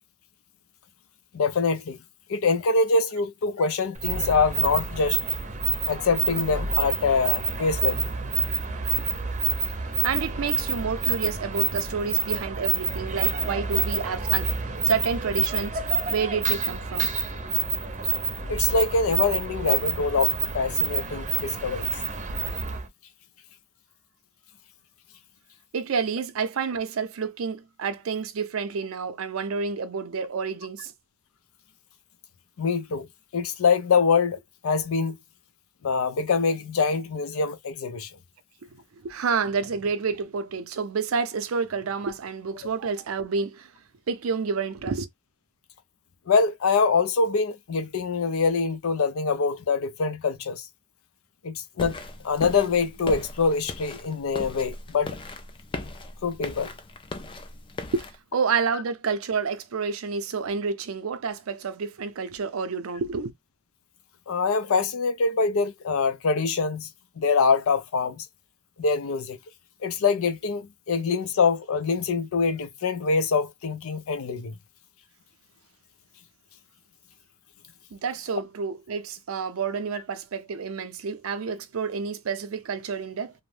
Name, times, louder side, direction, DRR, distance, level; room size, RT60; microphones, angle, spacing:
voice 1, 1.3-2.0 2.3-5.2 5.9-8.1 18.5-21.9 32.6-33.1 33.3-34.4 34.6-35.2 35.8-38.1 46.3-50.7 51.4-52.0 52.2-55.1 56.2-56.7 64.3-66.9 67.2-68.3 68.8-69.4 69.8-74.5, left 4 dB, 90° left, 0.5 m, -24 dB
sound 1, 3.9-22.9, right 6 dB, 35° right, 0.6 m, -28 dB
voice 2, 9.8-14.5 14.9-15.8 16.1-17.1 25.7-30.9 38.6-43.7 44.1-45.1 57.9-63.3 77.9-83.3, right 5 dB, 85° right, 0.5 m, -29 dB
sound 2, 51.8-58.1, left 2 dB, 25° left, 0.3 m, -38 dB
2.5 x 2.1 x 3.2 m
head